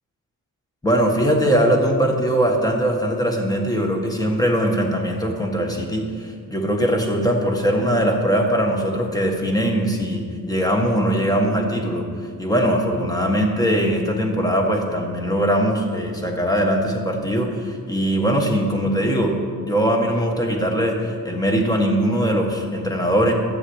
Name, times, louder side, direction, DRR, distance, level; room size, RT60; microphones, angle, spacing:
voice 1, 0.8-12.0 12.4-19.4 19.6-23.3, equal, 10° left, 1 dB, 1.6 m, -21 dB
13.5 x 7.1 x 8.0 m, 2.1 s
wide cardioid pair, 155°, 35 cm